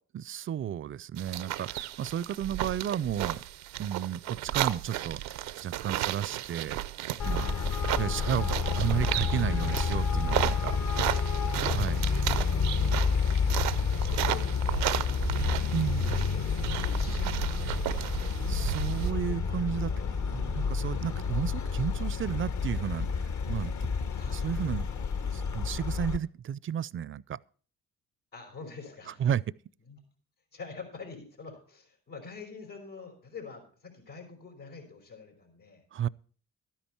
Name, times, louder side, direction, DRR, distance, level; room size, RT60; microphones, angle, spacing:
voice 1, 0.1-3.4 3.8-5.2 5.6-6.8 7.2-7.6 8.0-10.8 11.7-12.1 15.7-16.3 18.5-23.9 24.3-24.9 25.2-27.4 29.1-29.4 35.9-36.1, right 9 dB, 35° right, 0.4 m, -33 dB
sound 1, 1.2-19.1, right 13 dB, 85° right, 0.6 m, -34 dB
Traffic noise roadway noise, 7.2-26.2, left 5 dB, 55° left, 1.0 m, -29 dB
voice 2, 13.0-13.7 14.0-15.6 16.0-16.5 16.8-18.3 24.2-24.5 28.3-29.3 29.9-30.0 30.5-35.8, left 4 dB, 85° left, 4.7 m, -46 dB
12.5 x 10.5 x 4.4 m
supercardioid pair, 50°, 35 cm